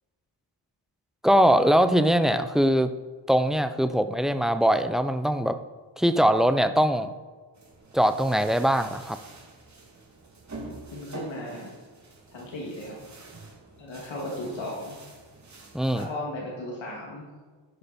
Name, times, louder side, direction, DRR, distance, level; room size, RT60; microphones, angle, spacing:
voice 1, 1.2-2.9 3.3-5.6 6.0-7.1 7.9-9.2 15.7-16.1, equal, ahead, 9 dB, 0.5 m, -22 dB
sound 1, 7.6-16.1, right 2 dB, 40° right, 2.6 m, -47 dB
voice 2, 10.9-11.7 12.3-13.0 13.8-15.0 15.9-17.3, left 1 dB, 85° left, -3 dB, 2.5 m, -35 dB
12.0 x 10.5 x 4.3 m, 1.5 s
wide cardioid pair, 130°, 44 cm